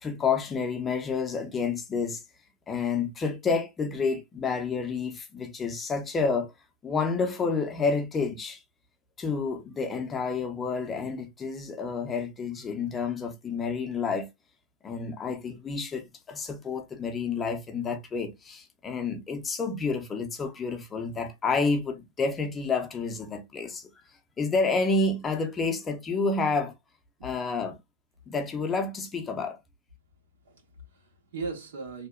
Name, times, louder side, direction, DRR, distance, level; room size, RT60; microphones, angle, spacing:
voice 1, 0.0-2.2 2.7-6.5 6.8-8.6 9.2-14.3 14.8-23.9 24.4-26.7 27.2-27.8 28.3-29.6, left 4 dB, 15° left, 0.5 m, -29 dB
voice 2, 27.2-27.7 30.4-32.1, right 4 dB, 85° right, 1.3 m, -39 dB
2.7 x 2.1 x 2.3 m
supercardioid pair, 145°, 0 cm